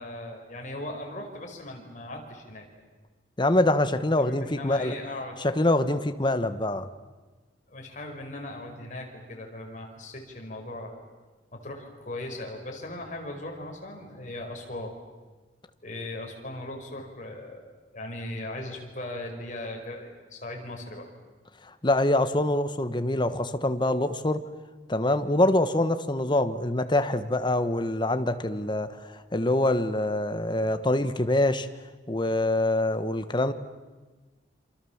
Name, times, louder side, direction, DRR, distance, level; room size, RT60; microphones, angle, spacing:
voice 1, 0.0-2.7 4.2-5.4 7.7-11.0 11.5-14.9 15.8-17.6 17.9-21.1, left 1 dB, 45° left, 2 dB, 5.2 m, -38 dB
voice 2, 3.4-4.9 5.4-6.9 21.6-24.4 24.9-31.7 32.1-33.5, left 1 dB, 25° left, 10 dB, 1.3 m, -25 dB
27.5 x 27.0 x 7.3 m, 1.3 s
head